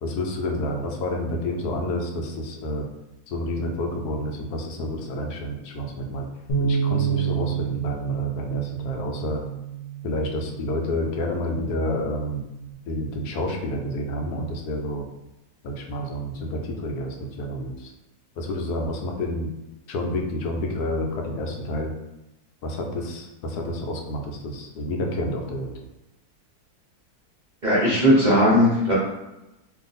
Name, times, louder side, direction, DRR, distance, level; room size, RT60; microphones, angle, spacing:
voice 1, 0.0-2.8 3.3-6.3 6.6-9.4 10.0-12.4 12.9-15.1 15.6-17.9 18.4-19.5 19.9-21.9 22.6-25.7, left 1 dB, 85° left, 2 dB, 1.1 m, -29 dB
Bass guitar, 6.5-12.7, right 8 dB, 55° left, 0.8 m, -29 dB
voice 2, 27.6-28.9, equal, 45° right, -7 dB, 0.6 m, -18 dB
2.6 x 2.4 x 4.0 m, 0.96 s
omnidirectional pair, 1.7 m